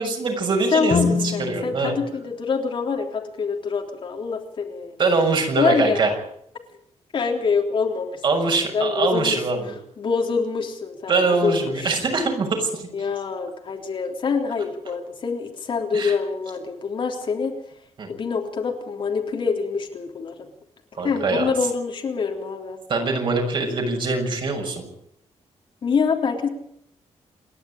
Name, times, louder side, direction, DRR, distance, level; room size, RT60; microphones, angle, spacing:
voice 1, 0.0-1.9 5.0-6.1 8.2-9.7 11.1-12.9 15.9-16.1 18.0-18.1 20.9-21.4 22.9-24.9, right 3 dB, 45° right, 2 dB, 6.6 m, -23 dB
voice 2, 0.7-5.0 5.6-6.1 7.1-8.2 8.5-9.4 10.0-11.9 12.9-17.5 18.1-20.5 21.0-22.8 25.8-26.5, left 5 dB, 45° left, 2 dB, 3.6 m, -25 dB
Guitar, 0.9-3.5, left 5 dB, 80° left, 5.8 m, -28 dB
28.0 x 11.5 x 9.1 m, 0.73 s
wide cardioid pair, 165°, 11 cm